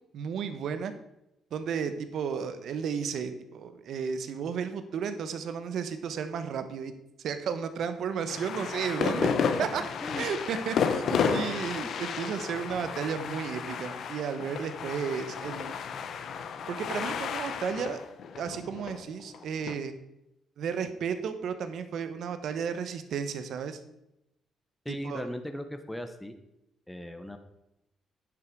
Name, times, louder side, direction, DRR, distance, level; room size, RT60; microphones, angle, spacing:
voice 1, 0.1-0.9 1.5-6.9 7.2-9.3 9.6-9.8 10.2-15.8 16.7-18.0 18.4-19.9 20.6-23.8 24.9-25.2, right 6 dB, 70° right, 10 dB, 1.1 m, -33 dB
sound 1, 8.3-19.7, left 6 dB, 65° left, 0.9 m, -32 dB
voice 2, 24.8-26.3 26.9-27.4, equal, 5° left, 7 dB, 1.1 m, -37 dB
9.9 x 7.8 x 4.7 m, 0.86 s
cardioid pair, 90°, 0 cm